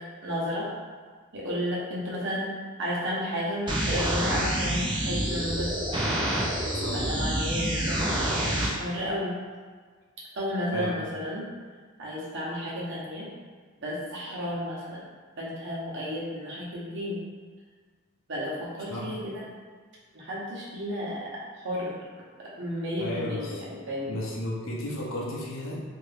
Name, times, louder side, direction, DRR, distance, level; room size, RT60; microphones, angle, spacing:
voice 1, 0.2-0.7 1.3-2.5 2.8-6.2 6.9-9.4 10.3-11.5 12.0-13.3 13.8-15.0 15.4-17.2 18.3-19.5 20.1-21.2 21.6-21.9 22.4-24.2, equal, 55° right, -6 dB, 0.9 m, -32 dB
sound 1, 3.7-8.7, right 1 dB, 20° right, 0.3 m, -27 dB
voice 2, 6.7-7.1 10.7-11.0 18.9-19.1 23.0-23.6 24.1-25.8, left 1 dB, 65° left, -4 dB, 0.6 m, -33 dB
2.9 x 2.6 x 3.2 m, 1.5 s
head